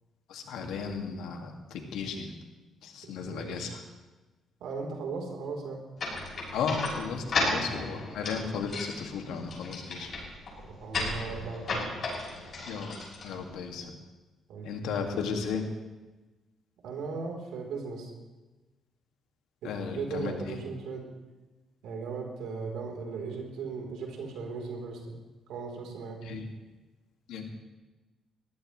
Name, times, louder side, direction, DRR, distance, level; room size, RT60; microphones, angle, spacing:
voice 1, 0.3-2.4 2.8-3.8 6.5-10.1 12.7-13.0 13.2-13.9 14.6-15.6 19.6-20.6 26.2-26.5 27.3-27.5, left 5 dB, 90° left, 3 dB, 2.0 m, -35 dB
voice 2, 3.0-3.7 4.6-5.8 7.4-7.6 10.6-11.8 14.5-14.7 16.8-18.1 19.6-21.0 21.8-25.0 25.5-26.2, right 4 dB, 85° right, 0 dB, 3.7 m, -37 dB
sound 1, 6.0-13.8, left 3 dB, 55° left, 6.2 m, -34 dB
21.5 x 15.0 x 3.2 m, 1.2 s
cardioid pair, 90°, 0 cm